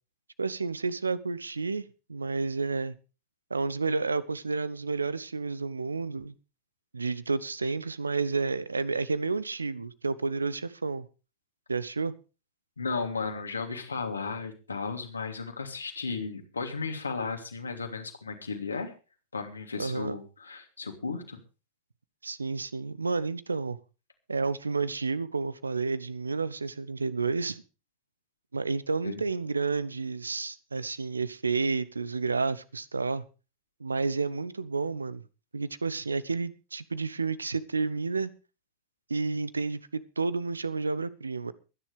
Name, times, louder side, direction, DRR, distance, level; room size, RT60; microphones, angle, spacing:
voice 1, 0.4-2.9 3.5-6.3 6.9-11.1 11.7-12.1 19.8-20.1 22.2-23.8 24.3-27.6 28.5-33.2 33.8-35.2 35.5-38.3 39.1-41.5, right 4 dB, 75° right, 0.9 m, -30 dB
voice 2, 12.8-18.9 19.3-21.4 29.0-29.2, left 4 dB, 75° left, 2.9 m, -35 dB
23.5 x 10.5 x 3.4 m
figure-of-eight pair, 90°, 0 cm